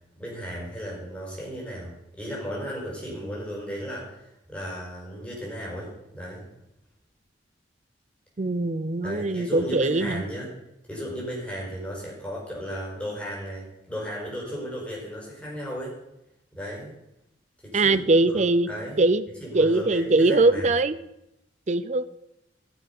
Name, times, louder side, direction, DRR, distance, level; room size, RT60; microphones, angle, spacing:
voice 1, 0.2-6.5 9.0-10.5 10.9-15.9 16.5-16.9 17.6-18.0 18.2-19.0 19.4-20.7, equal, 5° left, -4 dB, 5.0 m, -35 dB
voice 2, 8.4-10.2 17.7-18.7 19.0-19.3 19.5-21.0 21.7-22.0, right 2 dB, 40° right, 15 dB, 0.6 m, -21 dB
15.5 x 7.1 x 5.4 m, 0.86 s
head